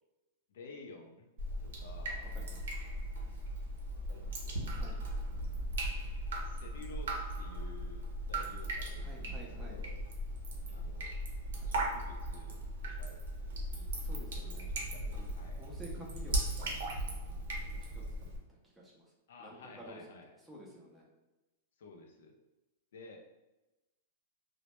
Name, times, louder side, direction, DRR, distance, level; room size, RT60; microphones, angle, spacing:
voice 1, 0.5-1.3 1.6-2.3 3.9-5.4 6.4-10.0 10.7-11.1 11.6-12.6 13.0-13.2 13.7-13.9 14.4-15.6 19.3-20.3 21.8-22.3 22.9-23.2, left 3 dB, 70° left, 2 dB, 0.4 m, -53 dB
Drip, 1.4-18.4, right 1 dB, 85° right, 0.6 m, -38 dB
voice 2, 2.3-2.7 4.7-5.0 9.0-9.8 11.6-11.7 14.0-14.7 15.1-16.8 17.7-18.0 18.6-19.1 19.4-20.0 20.5-21.1, right 1 dB, 5° right, -3 dB, 0.4 m, -51 dB
2.1 x 2.0 x 2.9 m, 1.0 s
supercardioid pair, 170°, 0 cm